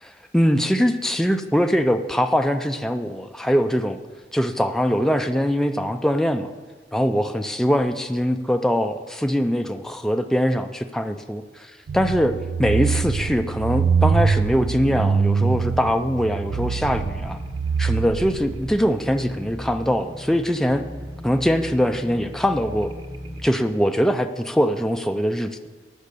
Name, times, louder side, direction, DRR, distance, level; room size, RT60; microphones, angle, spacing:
voice 1, 0.0-4.0 4.3-6.5 6.9-12.3 12.6-17.4 17.8-20.8 21.2-22.9 23.4-25.7, equal, 5° left, 6 dB, 0.4 m, -22 dB
sound 1, 11.9-18.8, right 5 dB, 90° right, 0.4 m, -23 dB
sound 2, 16.4-23.5, equal, 20° right, 1.0 m, -37 dB
12.0 x 6.2 x 8.2 m, 1.4 s
head